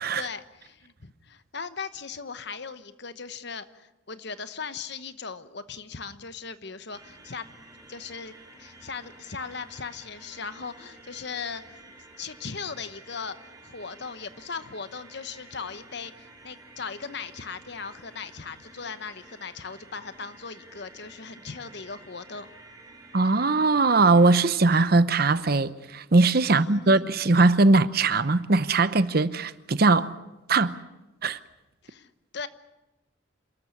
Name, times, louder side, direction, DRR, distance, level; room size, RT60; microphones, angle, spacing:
voice 1, 0.1-7.5 7.9-11.8 12.2-13.4 13.6-22.5 26.5-27.0 31.8-32.5, left 5 dB, 55° left, 1.1 m, -38 dB
sound 1, 6.9-24.5, right 2 dB, 20° right, 3.8 m, -51 dB
voice 2, 23.1-30.1 30.5-30.8 31.2-31.4, right 3 dB, 50° right, 0.8 m, -20 dB
27.5 x 14.0 x 9.7 m
head